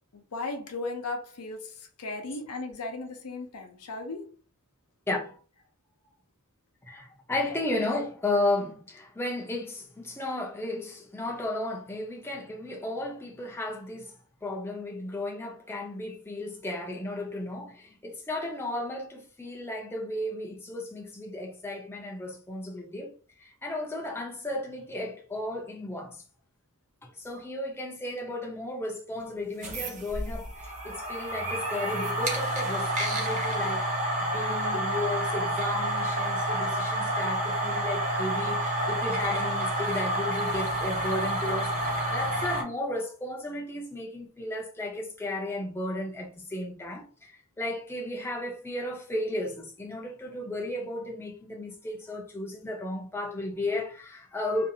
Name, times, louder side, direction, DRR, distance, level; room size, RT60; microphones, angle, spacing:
voice 1, 0.1-4.3 7.5-7.6, left 3 dB, 85° left, 0.6 m, -36 dB
voice 2, 5.1-5.4 6.9-14.1 14.4-23.1 23.4-26.2 27.0-54.7, left 1 dB, 10° left, 0.5 m, -34 dB
sound 1, 29.5-42.6, right 1 dB, 35° right, 0.6 m, -29 dB
2.6 x 2.3 x 2.7 m
head